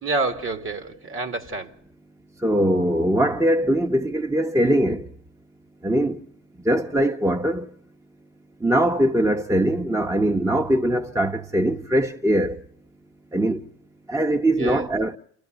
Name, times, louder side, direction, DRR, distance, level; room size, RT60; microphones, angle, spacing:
voice 1, 0.0-1.8 14.5-14.9, right 3 dB, 45° right, 2.3 m, -28 dB
voice 2, 2.4-5.1 5.8-6.2 6.6-7.7 8.6-12.6 13.3-13.6 14.1-15.2, right 1 dB, 10° right, 1.0 m, -21 dB
29.0 x 12.5 x 9.2 m
cardioid pair, 90°, 30 cm